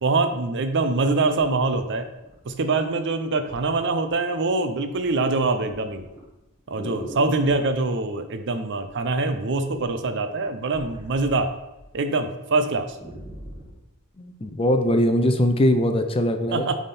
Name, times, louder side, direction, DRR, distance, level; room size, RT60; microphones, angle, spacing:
voice 1, 0.0-2.1 2.5-6.0 6.7-11.5 11.9-13.0 16.5-16.7, right 3 dB, 55° right, 8 dB, 0.6 m, -24 dB
sound 1, 2.0-2.8 3.5-3.7 4.0-4.5 4.8-7.7 8.8-9.3 9.6-11.9 12.2-12.3 12.7-13.8 14.4-14.5, right 1 dB, 15° right, 2.0 m, -42 dB
voice 2, 14.2-16.7, equal, 25° left, 7 dB, 0.5 m, -21 dB
8.8 x 3.6 x 4.2 m, 0.96 s
head